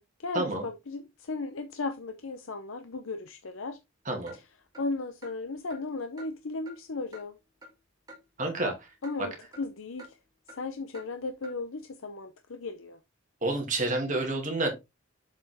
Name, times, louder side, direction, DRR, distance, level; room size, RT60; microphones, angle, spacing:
voice 1, 0.2-3.8 4.8-7.3 9.0-10.1 10.6-13.0, left 3 dB, 80° left, 0.7 m, -36 dB
Clock, 4.3-4.4 4.7-4.9 5.2-5.4 5.7-5.8 6.2-6.3 6.7-6.8 7.1-7.3 7.6-7.7 8.1-8.2 8.6-8.7 9.0-9.1 9.5-9.7 10.0-10.1 10.5-10.6 10.9-11.1 11.4-11.6, equal, 20° right, 2.0 m, -48 dB
voice 2, 8.4-8.7 13.4-14.7, right 2 dB, 40° right, 2.6 m, -28 dB
7.3 x 5.6 x 3.5 m
head